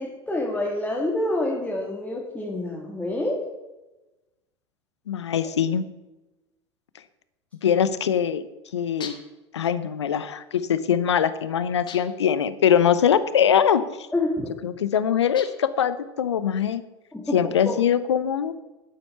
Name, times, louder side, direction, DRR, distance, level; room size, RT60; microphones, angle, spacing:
voice 1, 0.0-3.4 5.4-5.5 14.1-14.5 17.1-17.8, left 1 dB, 10° left, -2 dB, 2.4 m, -27 dB
voice 2, 5.1-5.8 7.6-8.4 8.7-9.1 9.5-13.8 14.6-16.8 17.3-18.5, left 8 dB, 80° left, 14 dB, 0.8 m, -22 dB
sound 1, 9.0-9.5 11.9-12.3 15.3-15.8, left 7 dB, 35° left, 1.6 m, -40 dB
10.5 x 9.5 x 5.8 m, 1.1 s
hypercardioid pair, 80°, 14 cm